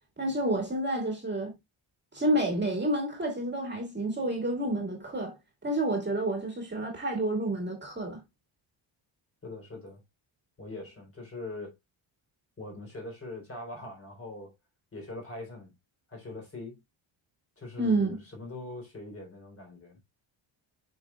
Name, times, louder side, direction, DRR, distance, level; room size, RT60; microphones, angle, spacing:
voice 1, 0.2-1.5 2.1-5.3 5.6-8.2 17.8-18.2, right 1 dB, 20° right, 2.4 m, -29 dB
voice 2, 9.4-10.0 10.6-11.8 12.6-14.5 14.9-15.7 16.1-16.8 17.6-20.0, left 2 dB, 25° left, 3.8 m, -42 dB
7.9 x 6.3 x 2.4 m
wide cardioid pair, 170°, 49 cm